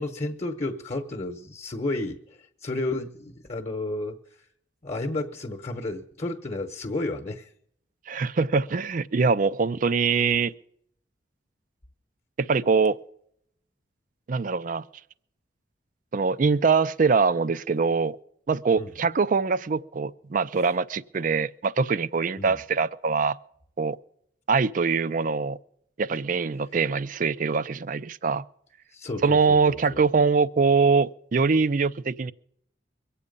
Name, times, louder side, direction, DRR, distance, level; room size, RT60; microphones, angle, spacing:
voice 1, 0.0-2.2 2.6-4.2 4.8-7.5 18.8-18.9 22.4-22.6 28.9-30.0, left 2 dB, 40° left, 1.0 m, -32 dB
voice 2, 8.1-10.5 12.4-13.0 14.3-14.8 16.1-18.2 18.5-23.4 23.8-24.0 24.5-25.6 26.0-28.4 29.2-32.3, right 5 dB, 45° right, 0.4 m, -23 dB
23.0 x 8.5 x 5.3 m
head